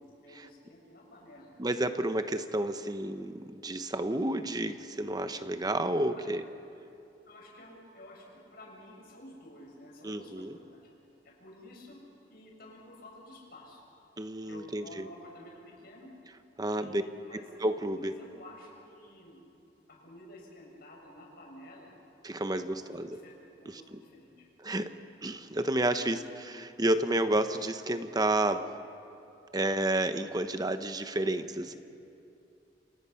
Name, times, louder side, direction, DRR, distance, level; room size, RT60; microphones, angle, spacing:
voice 1, 0.0-1.5 6.1-6.3 7.2-10.8 11.2-12.0 12.3-13.8 14.4-16.1 16.7-17.5 18.0-19.4 19.9-21.9 22.7-23.3 23.6-24.5 24.8-24.9 26.0-26.5 31.6-31.8, left 1 dB, 60° left, -2 dB, 7.4 m, -51 dB
voice 2, 1.6-6.4 10.0-10.5 14.2-15.0 16.6-17.0 17.3-18.1 22.2-23.1 23.7-23.8 24.6-24.9 25.2-28.6 29.5-31.8, right 1 dB, 20° right, 9 dB, 1.0 m, -30 dB
29.0 x 27.5 x 5.8 m, 2.7 s
head